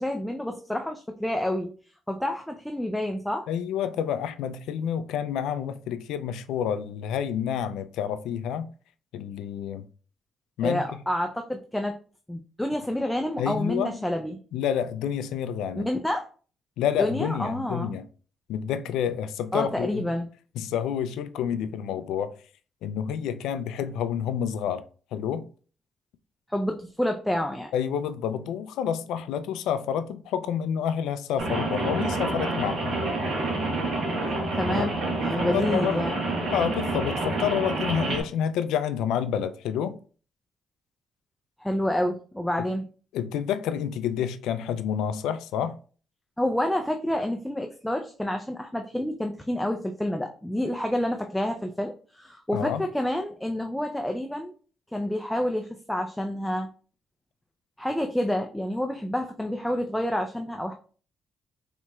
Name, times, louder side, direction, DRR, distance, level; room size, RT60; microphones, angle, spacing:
voice 1, 0.0-1.7 2.1-3.5 10.6-12.0 12.3-14.4 15.8-16.3 17.0-17.9 19.5-20.3 26.5-27.7 34.6-36.2 41.6-42.8 46.4-54.5 54.9-56.7 57.8-60.7, left 1 dB, 5° left, 0.4 m, -28 dB
voice 2, 3.5-8.7 9.1-9.9 10.6-10.8 13.4-14.0 14.5-15.9 16.8-18.1 18.5-20.1 20.6-22.3 22.8-24.8 25.1-25.5 27.7-33.0 34.7-34.9 35.4-36.0 36.5-40.0 43.1-45.7 52.5-52.8, left 8 dB, 90° left, 0.3 m, -29 dB
Rain, 31.4-38.2, right 2 dB, 65° right, 1.2 m, -28 dB
4.2 x 2.9 x 2.3 m
cardioid pair, 90°, 0 cm